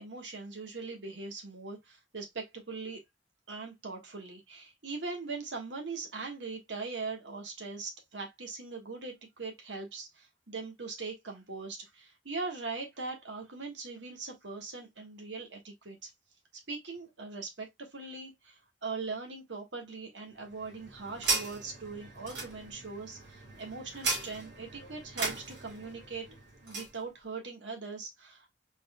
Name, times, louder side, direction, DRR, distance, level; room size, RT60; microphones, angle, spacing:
voice 1, 0.0-3.0 3.5-16.1 16.7-26.3 26.6-28.5, right 4 dB, 90° right, 1.4 m, -41 dB
sound 1, 20.4-27.0, right 3 dB, 70° right, 2.0 m, -37 dB
4.3 x 3.8 x 2.2 m
head